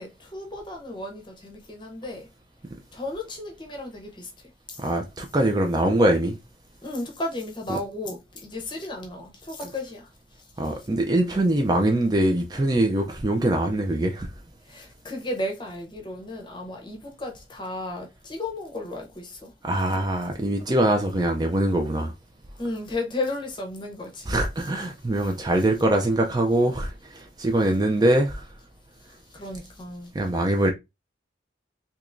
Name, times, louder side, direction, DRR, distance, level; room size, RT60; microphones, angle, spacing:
voice 1, 0.0-2.3 2.9-4.9 6.8-10.9 14.6-19.5 22.6-24.3 25.1-25.4 29.0-30.1, left 2 dB, 25° left, 0.8 m, -34 dB
voice 2, 4.8-6.4 7.7-7.8 10.6-14.3 19.6-22.1 24.3-28.4 30.1-30.7, right 1 dB, 20° right, 0.4 m, -23 dB
3.5 x 2.9 x 2.5 m
head